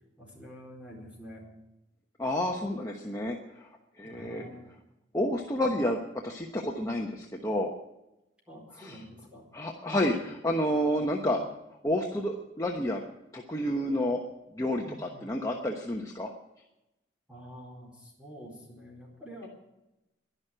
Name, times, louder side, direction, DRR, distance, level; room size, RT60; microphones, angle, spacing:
voice 1, 0.2-1.4 4.0-4.7 8.5-9.5 9.8-10.1 11.0-11.5 14.8-15.4 17.3-19.5, equal, 5° right, -1 dB, 4.3 m, -47 dB
voice 2, 2.2-3.7 4.0-4.4 5.1-7.7 8.8-9.0 9.5-11.4 11.8-13.0 13.3-14.2 14.5-16.3, left 1 dB, 15° left, 0 dB, 1.1 m, -30 dB
11.5 x 11.5 x 9.0 m, 0.95 s
head